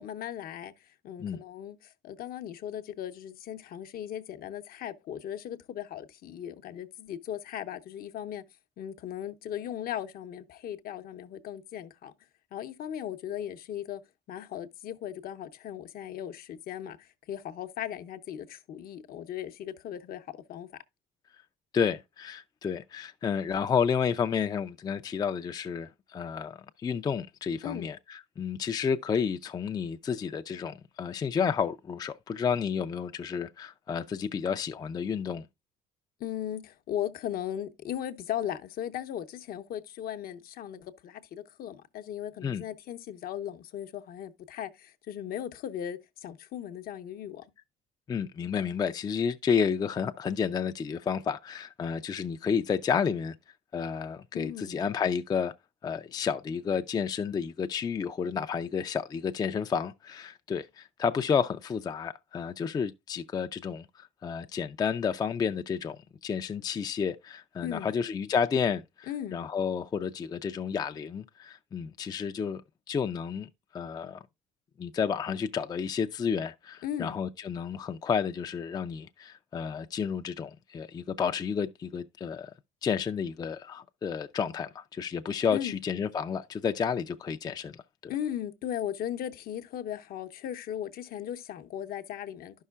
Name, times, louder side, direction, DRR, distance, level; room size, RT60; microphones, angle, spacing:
voice 1, 0.0-8.4 8.8-12.1 12.5-14.0 14.3-20.7 27.6-27.9 36.2-47.4 54.3-54.9 67.6-67.9 69.1-69.4 76.8-77.2 85.5-85.8 88.1-92.6, left 10 dB, 60° left, 0.7 m, -37 dB
voice 2, 21.7-35.5 42.4-42.6 48.1-53.3 53.7-55.5 55.8-72.6 72.9-74.2 74.8-82.5 82.8-88.1, left 6 dB, 25° left, 0.3 m, -31 dB
11.5 x 5.5 x 2.3 m
cardioid pair, 110°, 17 cm